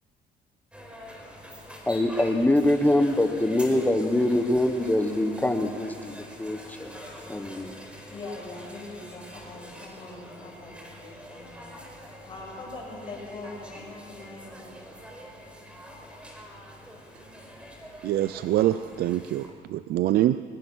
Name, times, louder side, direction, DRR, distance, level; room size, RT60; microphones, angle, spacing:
sound 1, 0.7-19.5, equal, 5° right, 4.3 m, -45 dB
voice 1, 1.9-7.0 7.3-7.7, left 1 dB, 10° left, 7 dB, 1.2 m, -24 dB
voice 2, 8.1-11.7 12.2-14.8, left 2 dB, 30° left, -3 dB, 8.0 m, -42 dB
voice 3, 18.0-20.4, right 13 dB, 65° right, 14 dB, 0.5 m, -25 dB
22.0 x 22.0 x 6.3 m, 2.3 s
cardioid pair, 110°, 17 cm